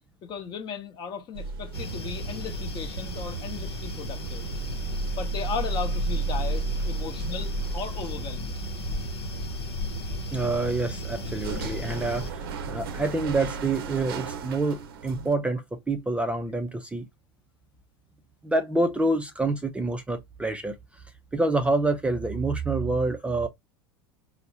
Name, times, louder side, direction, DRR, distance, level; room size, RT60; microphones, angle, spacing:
voice 1, 0.2-4.5 5.2-8.6, left 6 dB, 35° left, 0.8 m, -36 dB
sound 1, 1.3-15.3, right 3 dB, 70° right, 0.6 m, -34 dB
sound 2, 1.7-12.3, equal, 90° left, 0.7 m, -35 dB
voice 2, 10.3-17.1 18.4-21.0 21.3-23.5, right 2 dB, 10° right, 0.4 m, -27 dB
4.2 x 2.0 x 2.6 m
hypercardioid pair, 85°, 13 cm